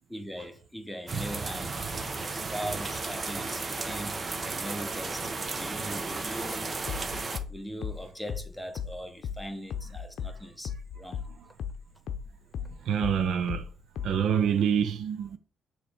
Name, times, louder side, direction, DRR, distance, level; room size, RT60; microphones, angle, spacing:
voice 1, 0.1-1.8 2.1-6.7 7.5-11.3 12.6-12.8, equal, 5° left, 1.1 m, -40 dB
sound 1, 1.1-7.4, right 3 dB, 35° right, 0.8 m, -34 dB
sound 2, 6.9-11.8 12.1-14.3, left 7 dB, 65° left, 0.6 m, -36 dB
voice 2, 12.9-13.6 14.0-15.4, right 8 dB, 70° right, 0.6 m, -26 dB
6.7 x 3.2 x 4.9 m
cardioid pair, 90°, 0 cm